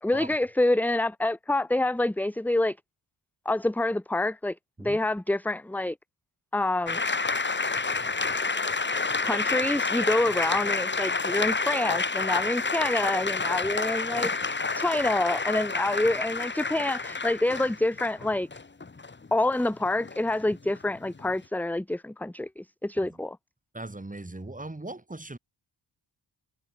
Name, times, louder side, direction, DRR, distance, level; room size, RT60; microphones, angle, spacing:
voice 1, 0.0-2.8 3.4-6.0 6.5-7.0 9.2-14.3 14.8-18.5 19.3-23.4, left 2 dB, 5° left, 0.7 m, -27 dB
sound 1, 6.9-21.3, left 4 dB, 25° left, 1.3 m, -29 dB
voice 2, 23.7-25.4, right 2 dB, 15° right, 5.8 m, -39 dB
wide cardioid pair, 140°, 46 cm